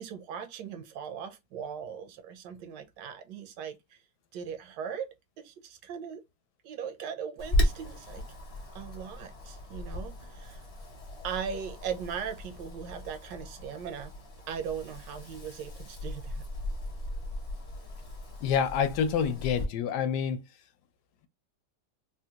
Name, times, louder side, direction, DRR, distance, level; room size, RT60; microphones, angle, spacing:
voice 1, 0.0-4.0 4.3-5.1 5.4-6.2 6.6-8.2 8.7-10.6 11.2-14.1 14.5-16.4, right 7 dB, 90° right, 1.3 m, -39 dB
Wind, 7.4-19.7, left 1 dB, 50° left, 0.4 m, -36 dB
voice 2, 18.4-20.4, left 7 dB, 75° left, 1.1 m, -27 dB
3.7 x 2.2 x 2.8 m
omnidirectional pair, 1.9 m